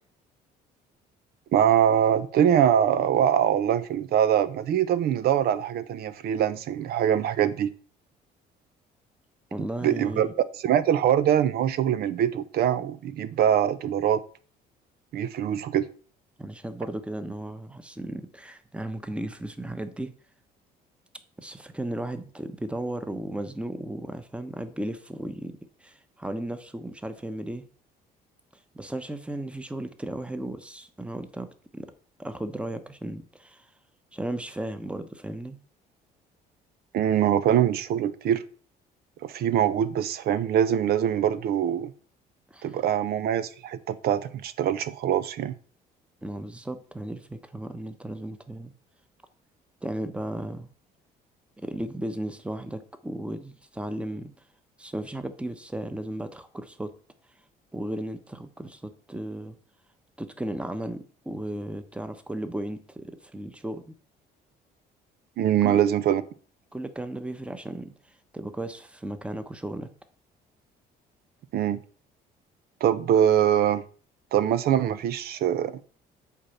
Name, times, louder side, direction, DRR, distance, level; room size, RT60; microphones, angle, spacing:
voice 1, 1.5-7.7 9.8-10.3 10.5-14.2 15.1-15.9 36.9-38.4 39.2-41.9 42.6-45.5 65.4-66.2 71.5-71.8 72.8-73.8 74.3-75.8, right 10 dB, 65° right, 0.8 m, -23 dB
voice 2, 9.5-10.3 16.4-20.1 21.4-27.7 28.7-31.9 32.2-33.7 34.1-35.6 42.5-42.8 46.2-48.7 49.8-50.7 51.6-54.3 54.8-56.9 57.7-59.6 60.2-63.9 65.6-65.8 66.7-67.9 68.3-69.9, right 1 dB, 5° right, 1.0 m, -35 dB
8.6 x 4.3 x 7.1 m
cardioid pair, 110°, 17 cm